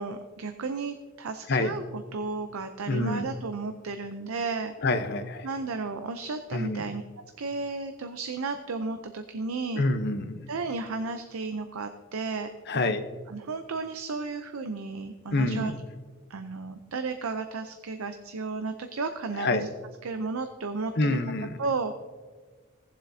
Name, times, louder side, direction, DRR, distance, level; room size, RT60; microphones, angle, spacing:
voice 1, 0.0-4.7 5.4-7.0 7.4-9.9 10.5-12.9 13.3-15.7 16.3-19.7 20.0-21.2 21.6-22.0, right 4 dB, 90° right, 8 dB, 0.6 m, -33 dB
voice 2, 2.9-3.3 4.8-5.5 6.5-6.8 9.8-10.4 12.7-13.0 15.3-15.8 19.4-19.6 21.0-21.6, left 2 dB, 55° left, 8 dB, 0.8 m, -27 dB
17.5 x 7.4 x 2.7 m, 1.4 s
head